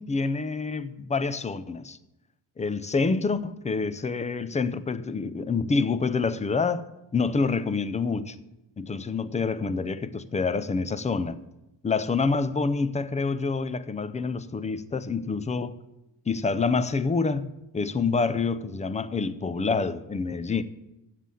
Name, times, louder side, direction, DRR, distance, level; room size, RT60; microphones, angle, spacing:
voice 1, 0.0-2.0 2.6-6.8 7.1-8.4 8.8-11.4 11.8-15.8 16.3-17.5 17.7-20.6, left 4 dB, 15° left, 0.3 m, -27 dB
7.6 x 7.4 x 8.2 m
cardioid pair, 135°, 46 cm